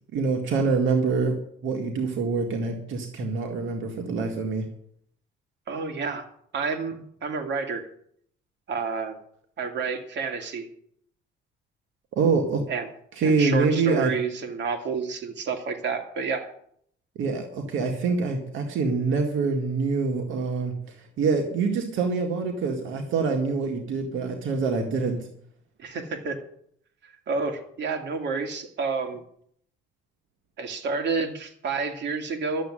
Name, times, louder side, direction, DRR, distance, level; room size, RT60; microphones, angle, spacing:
voice 1, 0.1-1.3 1.6-4.7 12.1-12.6 13.2-14.1 17.2-25.3, right 4 dB, 80° right, 3 dB, 2.1 m, -25 dB
voice 2, 5.7-6.2 6.5-7.9 8.7-9.1 9.6-10.7 12.7-12.9 13.2-16.5 25.8-26.4 27.0-29.2 30.6-32.6, right 4 dB, 65° right, 4 dB, 2.6 m, -29 dB
12.5 x 7.6 x 9.9 m, 0.66 s
cardioid pair, 90°, 20 cm